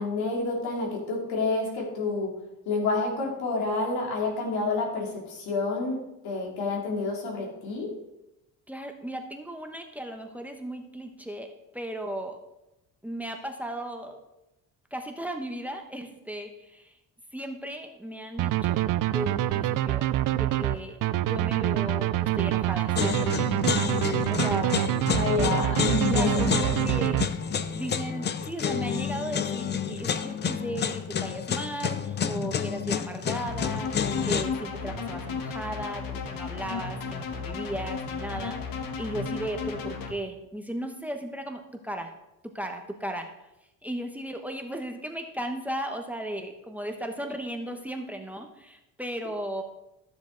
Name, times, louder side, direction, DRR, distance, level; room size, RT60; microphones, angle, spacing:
voice 1, 0.0-2.3 2.7-7.9 25.0-26.6, left 3 dB, 90° left, -1 dB, 2.9 m, -29 dB
voice 2, 8.7-11.5 11.7-12.4 13.0-14.2 14.9-16.9 17.3-20.1 20.3-23.3 24.3-24.9 26.0-27.2 27.7-42.1 42.4-43.3 43.8-49.6, right 1 dB, 5° right, 5 dB, 1.0 m, -36 dB
sound 1, 18.4-27.7, right 14 dB, 60° right, 0.5 m, -26 dB
sound 2, 22.9-34.4, left 7 dB, 30° left, 0.5 m, -29 dB
sound 3, 33.3-40.1, left 5 dB, 65° left, 1.3 m, -34 dB
13.0 x 7.1 x 3.9 m, 0.92 s
cardioid pair, 125°, 36 cm